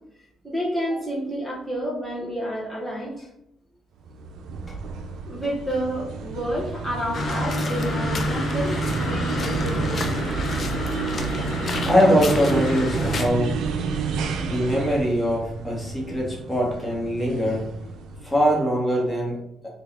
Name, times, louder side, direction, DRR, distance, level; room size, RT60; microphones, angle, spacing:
voice 1, 0.4-3.3 5.3-10.0, equal, 10° right, -5 dB, 1.0 m, -29 dB
sound 1, 4.1-18.6, right 5 dB, 80° right, 0.4 m, -30 dB
sound 2, 7.1-13.3, left 3 dB, 45° left, 0.5 m, -29 dB
voice 2, 11.8-13.6 14.4-17.6 18.2-19.4, equal, 15° left, -3 dB, 1.2 m, -22 dB
3.5 x 2.3 x 3.2 m, 0.82 s
cardioid pair, 90°, 0 cm